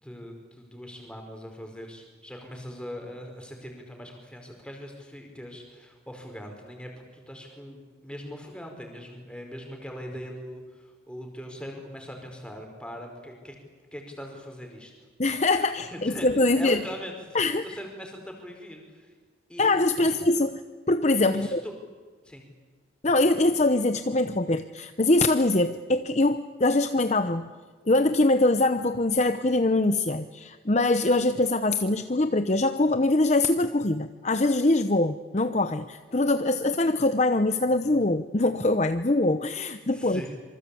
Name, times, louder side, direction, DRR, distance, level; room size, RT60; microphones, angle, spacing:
voice 1, 0.0-13.5 13.9-14.9 15.5-19.1 19.5-19.7 20.0-20.1 21.4-21.7 22.2-22.4 39.9-40.3, equal, 5° left, 2 dB, 5.0 m, -41 dB
voice 2, 15.2-16.8 17.3-17.6 19.6-20.6 20.9-21.6 23.0-27.5 27.9-40.2, left 2 dB, 35° left, 9 dB, 0.8 m, -23 dB
26.5 x 24.5 x 8.5 m, 1.4 s
head